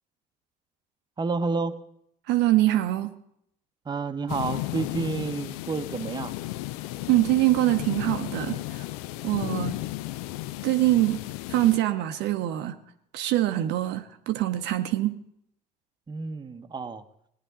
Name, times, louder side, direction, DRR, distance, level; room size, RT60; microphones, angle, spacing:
voice 1, 1.2-1.8 3.9-6.3 9.4-9.5 16.1-17.0, right 4 dB, 20° right, 8 dB, 0.9 m, -30 dB
voice 2, 2.3-3.1 7.1-8.8 9.2-9.8 10.6-11.2 11.5-12.8 13.1-15.2, right 15 dB, 55° right, 8 dB, 0.7 m, -24 dB
sound 1, 4.3-11.8, left 17 dB, 60° left, 0.4 m, -34 dB
18.5 x 10.0 x 4.0 m, 0.73 s
figure-of-eight pair, 50°, 21 cm